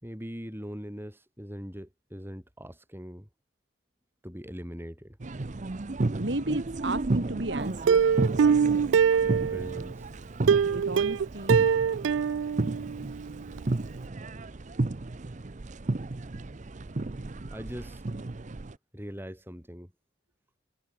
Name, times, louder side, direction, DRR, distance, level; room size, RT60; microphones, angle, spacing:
voice 1, 0.0-3.3 4.2-5.2 9.2-10.1 17.5-18.0 18.9-19.9, equal, 10° right, 5.3 m, -41 dB
sound 1, 5.2-18.7, right 2 dB, 40° right, 0.7 m, -33 dB
voice 2, 6.2-8.1 10.7-11.6, right 1 dB, 65° right, 3.0 m, -33 dB
Plucked string instrument, 7.9-9.8 10.5-13.3 13.6-13.7 14.0-14.1, right 7 dB, 85° right, 0.4 m, -23 dB
head